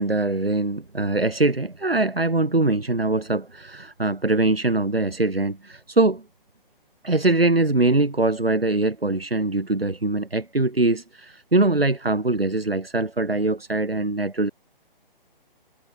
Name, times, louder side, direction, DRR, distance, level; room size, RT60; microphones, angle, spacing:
voice 1, 0.0-6.2 7.0-14.5, right 2 dB, 85° right, 4.8 m, -22 dB
figure-of-eight pair, 135°, 29 cm